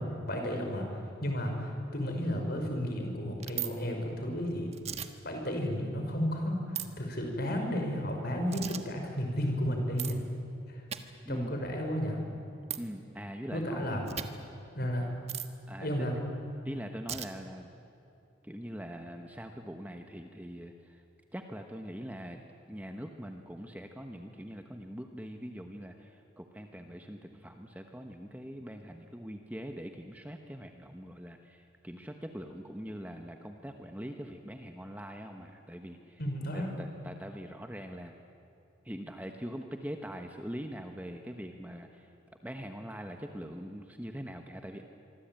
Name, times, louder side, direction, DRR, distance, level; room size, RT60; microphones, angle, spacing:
voice 1, 0.0-4.7 5.2-10.2 10.7-10.8 11.3-12.2 13.5-14.0 14.7-15.1 15.8-16.1 36.2-36.7, equal, 50° left, 3 dB, 5.5 m, -33 dB
sound 1, 3.4-3.7 4.7-5.1 6.8-6.9 8.5-8.8 10.0-10.1 10.9-11.0 12.7-12.8 14.1-14.3 15.3-15.5 17.1-17.3, right 10 dB, 35° right, 1.3 m, -36 dB
voice 2, 12.8-13.9 15.7-16.1 16.6-17.7 18.4-21.0 21.3-22.4 22.7-36.2 36.5-38.1 38.8-42.1 42.4-44.8, equal, 10° right, 4 dB, 1.2 m, -42 dB
25.5 x 24.0 x 9.1 m, 2.8 s
head